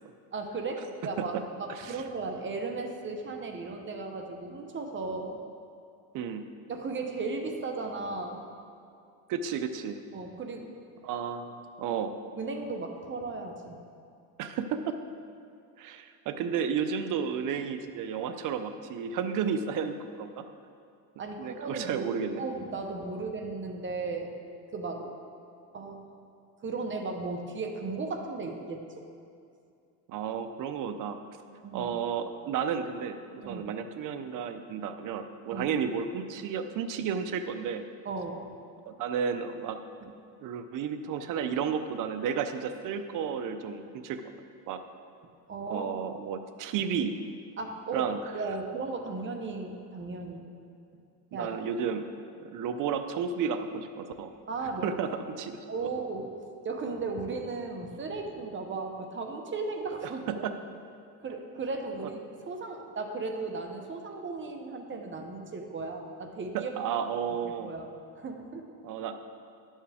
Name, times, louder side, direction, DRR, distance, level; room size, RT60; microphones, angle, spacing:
voice 1, 0.3-1.3 1.6-5.4 6.7-8.4 10.1-10.7 12.4-13.8 21.2-22.1 22.4-24.3 24.7-25.1 25.7-26.1 26.6-28.8 31.6-31.9 33.4-33.6 35.5-35.7 38.0-38.4 45.5-46.0 47.6-48.1 48.3-50.5 51.3-51.5 54.5-55.0 55.7-56.3 56.6-60.2 61.2-66.7 67.6-68.7, right 3 dB, 30° right, 4 dB, 1.0 m, -36 dB
voice 2, 1.7-2.0 6.1-6.4 9.3-10.0 11.0-12.1 14.4-15.0 15.8-20.4 21.4-22.4 30.1-31.2 31.7-37.8 38.9-39.8 40.4-44.2 44.7-44.8 45.7-47.1 47.9-48.2 51.3-52.1 52.4-54.3 54.8-55.1 55.4-55.6 60.0-60.1 60.4-60.5 62.0-62.1 66.5-67.7 68.8-69.2, right 7 dB, 50° right, 8 dB, 0.7 m, -32 dB
11.5 x 7.3 x 3.5 m, 2.5 s
cardioid pair, 115°, 41 cm